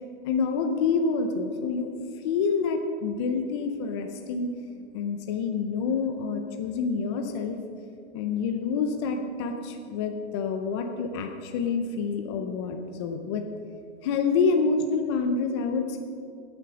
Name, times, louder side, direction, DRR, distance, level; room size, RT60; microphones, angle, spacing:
voice 1, 0.3-1.9 2.2-4.5 4.9-7.6 8.1-13.4 14.0-16.0, left 5 dB, 25° left, 5 dB, 0.5 m, -27 dB
15.0 x 8.5 x 6.2 m, 2.4 s
hypercardioid pair, 165°, 34 cm